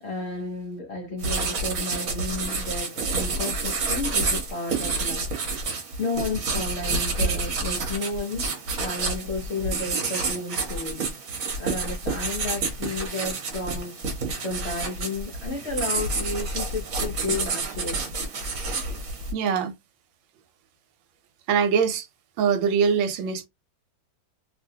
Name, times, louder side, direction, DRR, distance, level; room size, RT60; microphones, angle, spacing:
voice 1, 0.0-5.3 6.0-11.1 11.6-14.0 14.4-18.1, left 3 dB, 60° left, 0.7 m, -32 dB
sound 1, 1.2-19.3, right 3 dB, 55° right, 1.2 m, -29 dB
voice 2, 19.3-19.7 21.5-22.1 22.4-23.5, right 6 dB, 90° right, 1.4 m, -23 dB
2.9 x 2.6 x 2.7 m
omnidirectional pair, 2.0 m